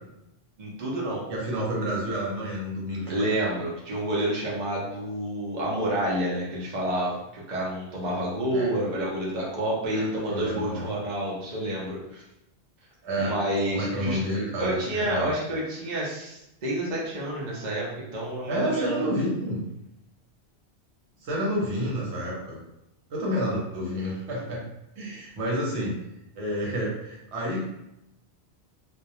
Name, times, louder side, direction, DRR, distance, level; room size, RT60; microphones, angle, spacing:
voice 1, 0.6-1.2 3.1-12.2 13.2-14.2 14.6-19.0, right 1 dB, 50° right, -5 dB, 0.7 m, -29 dB
voice 2, 1.3-3.4 8.5-8.7 9.9-10.9 13.0-13.3 13.7-15.3 18.5-19.6 21.2-22.6 23.1-24.6 25.0-26.0 26.4-27.6, equal, 80° right, -4 dB, 1.1 m, -29 dB
2.2 x 2.1 x 2.7 m, 0.87 s
omnidirectional pair, 1.1 m